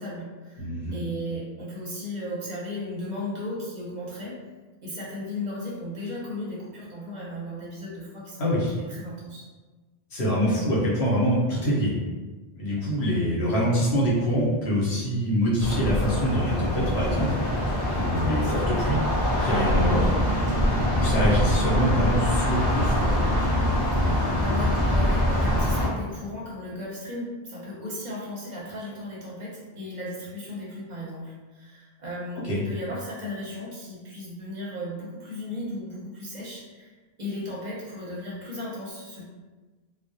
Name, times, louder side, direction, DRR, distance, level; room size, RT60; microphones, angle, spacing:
voice 1, 0.0-4.4 4.8-9.5 23.9-36.9 37.2-39.2, left 1 dB, 50° right, -6 dB, 0.6 m, -36 dB
voice 2, 0.6-1.0 8.4-8.7 10.1-11.9 12.6-20.1 21.0-23.1 32.4-32.6, equal, 85° left, -6 dB, 1.0 m, -25 dB
sound 1, 15.6-25.9, equal, 20° left, 0.6 m, -24 dB
2.3 x 2.0 x 2.6 m, 1.3 s
omnidirectional pair, 1.0 m